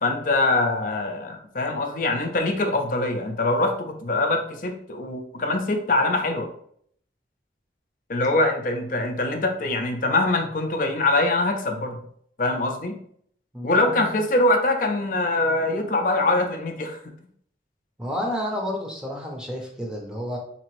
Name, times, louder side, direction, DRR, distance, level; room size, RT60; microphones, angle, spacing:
voice 1, 0.0-6.5 8.1-12.0 12.4-13.0 13.6-17.0, left 2 dB, 50° left, 4 dB, 0.5 m, -23 dB
voice 2, 13.5-14.2 18.0-20.4, equal, 5° right, -1 dB, 0.7 m, -30 dB
4.1 x 2.9 x 3.1 m, 0.63 s
head